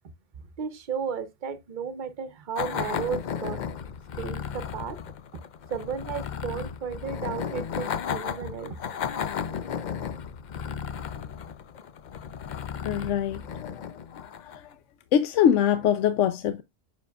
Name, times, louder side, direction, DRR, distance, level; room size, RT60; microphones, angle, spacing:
voice 1, 0.6-3.6 4.2-5.0 5.3-5.4 5.7-8.8, right 7 dB, 45° right, 0.8 m, -34 dB
sound 1, 2.6-14.7, left 7 dB, 55° left, 0.5 m, -34 dB
voice 2, 12.8-14.7 15.1-16.6, left 9 dB, 80° left, 0.9 m, -24 dB
7.2 x 6.2 x 2.3 m
omnidirectional pair, 1.2 m